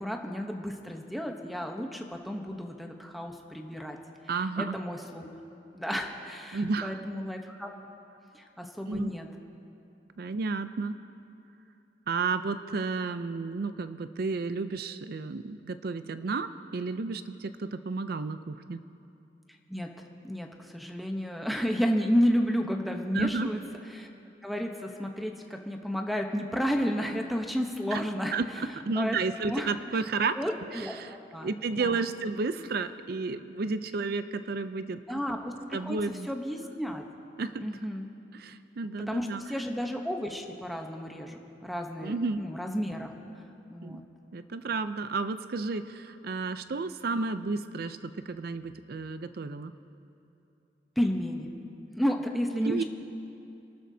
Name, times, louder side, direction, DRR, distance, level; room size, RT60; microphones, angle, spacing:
voice 1, 0.0-4.0 4.6-5.3 5.7-7.7 8.3-9.3 19.7-19.9 20.2-23.6 23.9-24.1 24.4-28.4 29.0-29.2 29.4-29.7 30.4-30.9 31.3-31.5 31.8-31.9 35.1-36.0 36.3-37.0 37.6-38.1 39.1-43.1 43.7-44.0 51.0-51.5 52.0-52.8, equal, ahead, 3 dB, 0.9 m, -31 dB
voice 2, 4.3-4.8 6.5-7.0 8.9-9.1 10.2-11.0 12.1-18.8 23.1-23.5 27.9-28.0 28.3-30.4 30.7-31.2 31.4-35.0 35.7-36.3 37.4-37.7 38.3-39.4 42.0-42.4 43.8-44.0 44.3-49.7 52.6-52.8, right 4 dB, 60° right, 11 dB, 0.5 m, -32 dB
29.0 x 12.5 x 2.8 m, 2.7 s
head